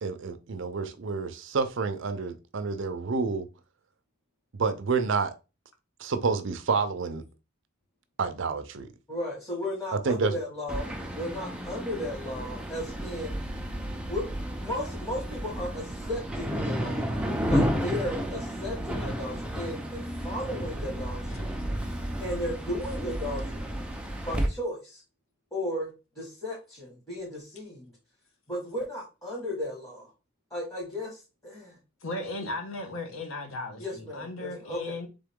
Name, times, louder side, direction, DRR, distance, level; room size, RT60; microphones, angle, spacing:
voice 1, 0.0-3.5 4.5-5.3 6.0-7.2 8.2-8.9 10.0-10.3, right 4 dB, 60° right, 0.6 m, -29 dB
voice 2, 9.1-13.4 14.1-14.2 14.6-17.0 17.4-21.5 22.2-23.7 24.3-25.0 25.5-25.9 26.1-27.9 28.5-30.1 30.5-31.8 33.8-35.0, left 1 dB, 15° left, 1.7 m, -35 dB
sound 1, 10.7-24.5, equal, 5° right, 0.6 m, -32 dB
voice 3, 32.0-35.1, left 2 dB, 80° left, 1.2 m, -36 dB
3.8 x 3.7 x 3.6 m
head